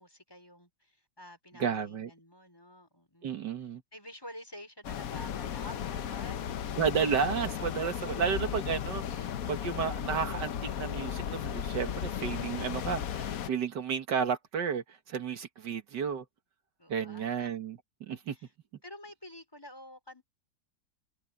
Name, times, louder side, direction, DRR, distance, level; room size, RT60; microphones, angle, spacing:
voice 1, 0.0-3.4 3.7-6.8 16.8-17.5 18.3-18.5 18.8-20.2, left 1 dB, 15° left, 4.6 m, -50 dB
voice 2, 1.6-2.1 3.2-3.8 6.8-16.2 16.9-17.8 18.1-18.4, right 6 dB, 80° right, 2.1 m, -32 dB
sound 1, 4.8-13.5, left 9 dB, 60° left, 1.2 m, -35 dB
omnidirectional pair, 1.9 m